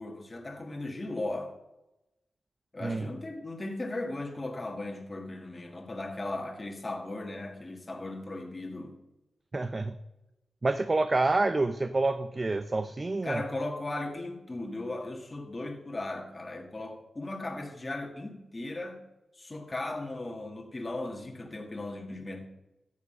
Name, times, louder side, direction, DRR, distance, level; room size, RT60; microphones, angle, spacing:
voice 1, 0.0-1.5 2.7-8.9 13.2-19.0 19.3-22.5, left 2 dB, 25° left, 1.8 m, -37 dB
voice 2, 9.5-10.0 10.6-13.4, right 2 dB, 30° right, 0.6 m, -28 dB
14.0 x 8.5 x 5.5 m
wide cardioid pair, 115°, 0 cm